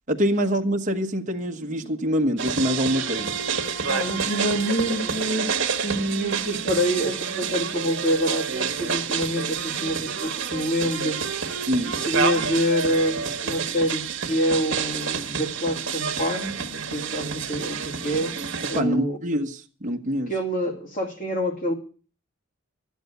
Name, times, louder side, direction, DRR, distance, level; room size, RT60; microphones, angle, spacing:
voice 1, 0.1-3.3 11.7-11.9 18.7-20.3, equal, 35° right, 1.2 m, -25 dB
sound 1, 2.4-18.8, right 6 dB, 60° right, 1.5 m, -28 dB
voice 2, 3.9-11.2 11.9-18.4 18.7-19.2 20.2-21.7, equal, 40° left, 2.5 m, -26 dB
13.5 x 8.3 x 7.9 m
head